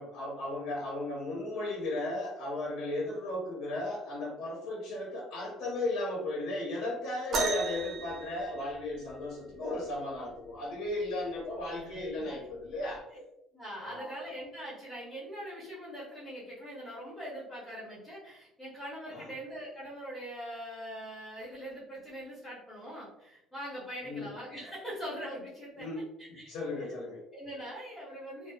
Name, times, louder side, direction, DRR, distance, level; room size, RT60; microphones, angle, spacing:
voice 1, 0.0-13.1 13.8-14.1 19.1-19.3 24.0-24.3 25.8-27.2, left 2 dB, 75° left, -5 dB, 0.7 m, -35 dB
sound 1, 7.3-9.2 10.9-11.0 11.8-12.0 12.9-13.0, right 2 dB, 35° right, 0.4 m, -34 dB
voice 2, 11.7-12.3 13.1-13.2 13.5-25.9 26.3-26.4 26.7-27.0 27.3-28.5, equal, 5° right, -8 dB, 0.8 m, -42 dB
2.7 x 2.1 x 2.3 m, 0.83 s
cardioid pair, 165°, 0 cm